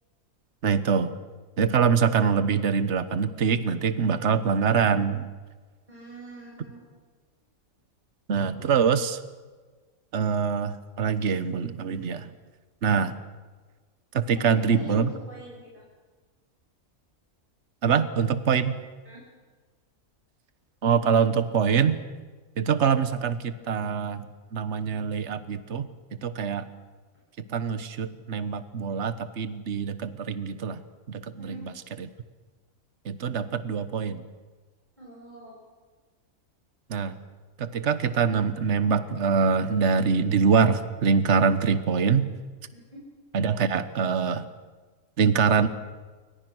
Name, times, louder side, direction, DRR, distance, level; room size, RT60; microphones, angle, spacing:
voice 1, 0.6-1.1 1.6-5.3 8.3-9.2 10.1-12.3 12.8-13.1 14.1-15.1 17.8-18.8 20.8-22.0 22.6-25.9 26.2-26.6 27.5-30.8 31.1-31.7 33.0-34.2 36.9-37.1 37.6-42.3 43.3-44.5 45.2-45.7, right 6 dB, 55° right, 11 dB, 1.4 m, -24 dB
voice 2, 5.9-6.8 14.4-15.8 19.0-19.2 31.4-31.7 35.0-35.6 42.7-43.0, right 1 dB, 30° right, -4 dB, 6.6 m, -43 dB
29.0 x 24.5 x 6.3 m, 1.4 s
omnidirectional pair, 1.5 m